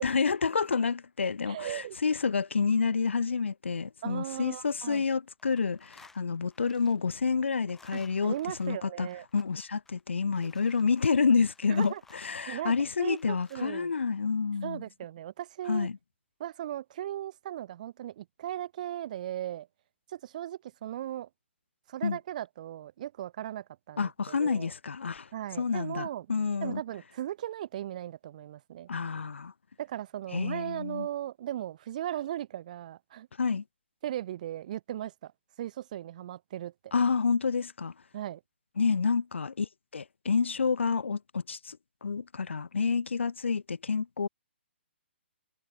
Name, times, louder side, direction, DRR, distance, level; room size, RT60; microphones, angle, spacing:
voice 1, 0.0-9.1 9.3-14.8 15.7-16.0 22.0-22.2 24.0-25.3 25.6-26.8 28.9-29.5 30.3-31.1 33.4-33.6 36.9-37.9 38.8-44.3, left 5 dB, 85° left, 1.9 m, -29 dB
voice 2, 1.5-2.0 4.0-5.0 7.9-9.3 11.7-12.0 12.5-12.7 13.0-13.9 14.6-15.9 16.4-19.7 20.1-21.3 21.9-24.7 25.3-26.3 26.6-28.9 29.8-33.3 34.0-35.3 35.6-36.7 38.1-38.4, right 12 dB, 40° right, 1.6 m, -37 dB
sound 1, 4.5-5.0 5.3-13.7, left 4 dB, 5° left, 2.8 m, -60 dB
hypercardioid pair, 160°, 6 cm